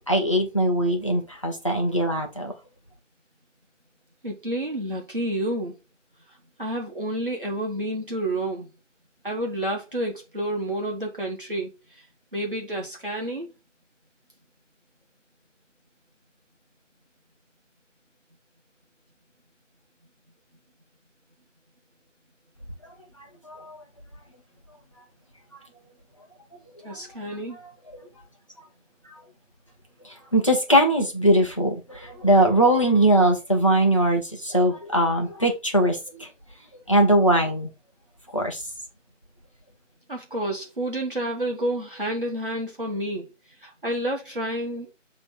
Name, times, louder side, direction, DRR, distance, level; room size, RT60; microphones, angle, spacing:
voice 1, 0.0-2.5 23.4-23.8 26.8-27.0 27.9-28.1 30.0-36.3 36.9-37.7 38.3-38.6, right 1 dB, 25° left, 1.3 m, -21 dB
voice 2, 4.2-5.7 6.6-8.7 9.2-11.7 12.3-13.5 26.8-27.6 40.1-43.3 43.6-44.9, right 1 dB, 45° right, 1.7 m, -29 dB
7.6 x 3.5 x 4.5 m
figure-of-eight pair, 170°, 38 cm